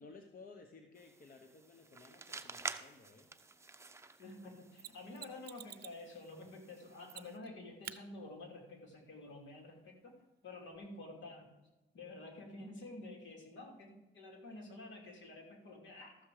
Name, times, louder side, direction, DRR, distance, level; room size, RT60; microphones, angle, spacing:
voice 1, 0.0-3.3, left 4 dB, 45° left, 5 dB, 1.1 m, -56 dB
sound 1, 0.9-7.4, right 3 dB, 15° right, 0.7 m, -50 dB
voice 2, 4.2-10.1 10.4-11.5 11.9-16.2, left 2 dB, 70° left, 1 dB, 3.0 m, -50 dB
Mechanisms, 4.8-6.0 7.1-7.5 7.8-8.0 10.8-10.9, right 10 dB, 55° right, 0.6 m, -49 dB
13.0 x 7.3 x 4.9 m, 1.0 s
cardioid pair, 90°, 20 cm